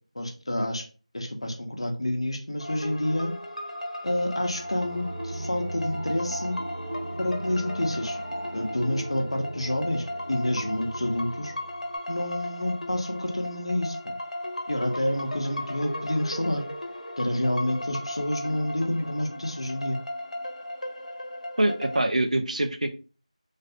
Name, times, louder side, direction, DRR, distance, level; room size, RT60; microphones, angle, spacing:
voice 1, 0.1-0.9 1.1-3.3 4.0-6.6 7.2-8.2 8.5-11.5 12.1-14.1 14.7-16.7 17.2-20.0, left 1 dB, 50° left, 4 dB, 0.6 m, -28 dB
sound 1, 2.6-22.0, left 1 dB, 80° left, 0.8 m, -36 dB
sound 2, 4.4-12.0, right 1 dB, 30° right, 0.6 m, -38 dB
voice 2, 21.6-22.9, right 1 dB, 75° right, 7 dB, 0.5 m, -24 dB
3.2 x 2.4 x 2.7 m, 0.37 s
figure-of-eight pair, 180°, 4 cm